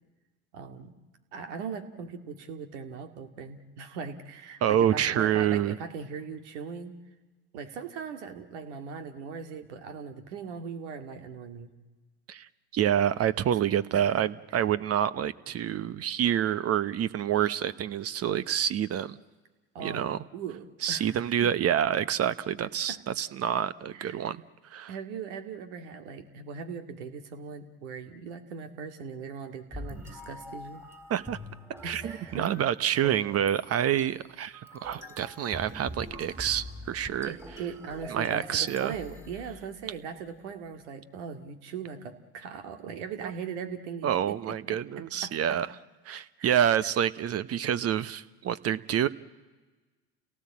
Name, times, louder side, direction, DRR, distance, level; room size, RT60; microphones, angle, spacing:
voice 1, 0.5-0.9 1.3-6.9 7.5-11.7 13.9-14.3 14.5-14.7 19.7-21.5 22.9-23.0 23.9-24.3 24.9-30.8 31.8-32.5 37.2-44.4 44.7-44.8 45.2-45.6 46.4-46.7, right 6 dB, 75° right, 8 dB, 2.2 m, -39 dB
voice 2, 4.6-5.8 12.3-19.2 19.8-20.2 20.8-24.4 24.7-24.9 31.1-31.4 31.8-37.3 38.1-39.0 43.2-43.3 44.0-45.7 46.1-49.1, right 10 dB, 45° right, 17 dB, 1.0 m, -27 dB
sound 1, 29.7-40.0, equal, 10° right, 3.6 m, -44 dB
29.5 x 17.5 x 8.6 m, 1.3 s
hypercardioid pair, 75°, 35 cm